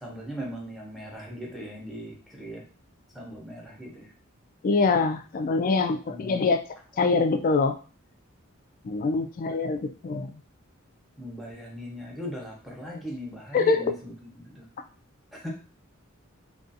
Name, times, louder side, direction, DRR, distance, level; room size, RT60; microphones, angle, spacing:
voice 1, 0.0-2.6 3.1-4.1 6.1-6.5 9.1-9.3 11.2-14.7 15.3-15.5, equal, ahead, -3 dB, 0.7 m, -39 dB
voice 2, 4.6-6.6 7.0-7.7 8.8-10.3 13.5-13.9, left 4 dB, 40° left, 7 dB, 0.3 m, -24 dB
2.4 x 2.3 x 2.6 m, 0.39 s
head